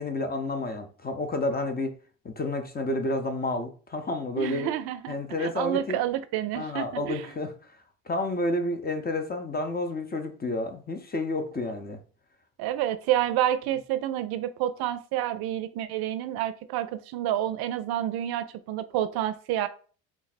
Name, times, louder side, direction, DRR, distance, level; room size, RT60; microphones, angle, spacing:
voice 1, 0.0-2.0 2.2-4.7 5.1-6.0 6.5-7.5 8.1-12.0, left 2 dB, 20° left, 0.7 m, -30 dB
voice 2, 4.4-7.2 12.6-19.7, right 12 dB, 60° right, 0.5 m, -29 dB
3.5 x 2.0 x 4.0 m
supercardioid pair, 70°, 43 cm